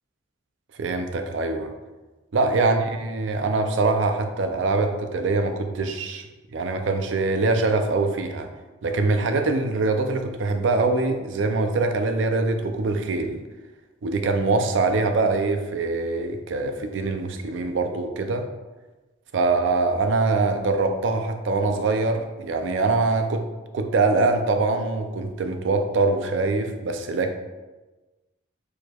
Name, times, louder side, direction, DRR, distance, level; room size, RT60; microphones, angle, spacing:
voice 1, 0.8-1.7 2.3-6.3 6.5-8.5 8.8-13.4 14.0-18.5 19.3-23.4 23.7-27.3, right 3 dB, 70° right, 6 dB, 0.4 m, -23 dB
4.6 x 4.5 x 2.3 m, 1.2 s
head